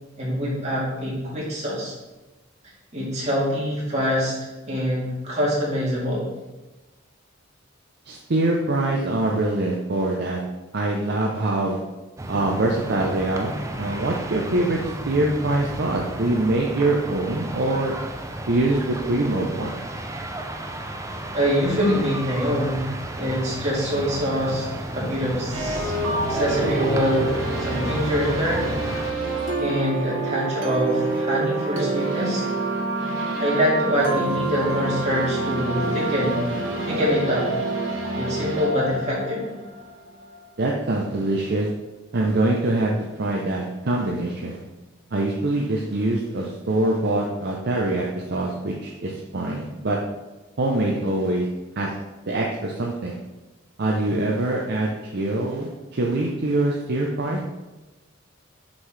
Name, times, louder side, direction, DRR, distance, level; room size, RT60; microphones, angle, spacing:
voice 1, 0.2-1.9 2.9-4.3 4.7-6.3 21.3-22.9 23.2-25.9 26.3-28.7 29.6-32.4 33.4-36.4 36.8-37.5 38.2-39.4, equal, 35° right, -6 dB, 2.2 m, -24 dB
voice 2, 8.1-10.4 10.7-11.8 12.3-14.8 15.1-17.9 18.5-19.8 35.8-36.3 36.6-37.0 40.6-41.7 42.1-44.6 45.1-50.0 50.6-51.5 51.8-51.9 52.3-53.2 53.8-57.4, right 2 dB, 55° right, -1 dB, 0.6 m, -24 dB
sound 1, 12.2-29.1, right 1 dB, 15° right, 0.5 m, -33 dB
sound 2, 25.5-40.4, right 2 dB, 80° right, 1.1 m, -27 dB
6.1 x 5.6 x 3.3 m, 1.1 s
head